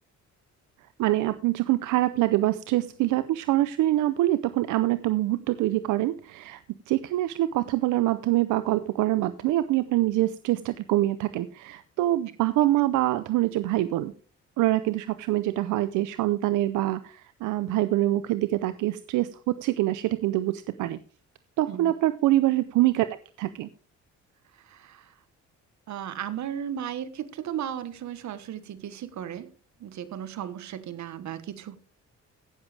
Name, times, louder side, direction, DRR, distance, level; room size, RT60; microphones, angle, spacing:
voice 1, 1.0-6.6 6.9-14.1 14.6-21.0 21.6-23.7, right 15 dB, 90° right, 0.6 m, -25 dB
voice 2, 24.6-25.1 25.9-29.5 29.8-31.8, right 10 dB, 65° right, 1.2 m, -35 dB
16.0 x 7.2 x 3.3 m
cardioid pair, 90°, 30 cm